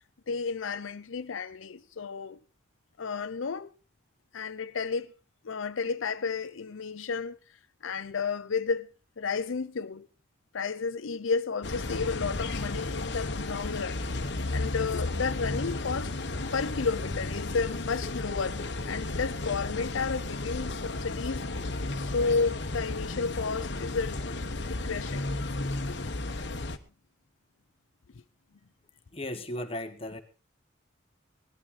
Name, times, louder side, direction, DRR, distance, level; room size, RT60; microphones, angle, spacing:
voice 1, 0.3-2.4 3.0-3.7 4.3-5.1 5.4-7.4 7.8-8.9 9.2-10.1 10.5-14.0 14.5-16.1 16.5-21.4 22.0-24.2 24.7-25.3 25.9-26.0, left 5 dB, 90° left, 0.7 m, -32 dB
sound 1, 11.6-26.8, left 2 dB, 60° left, 1.2 m, -33 dB
voice 2, 29.1-30.2, left 1 dB, 30° left, 1.4 m, -36 dB
19.0 x 12.5 x 4.1 m
head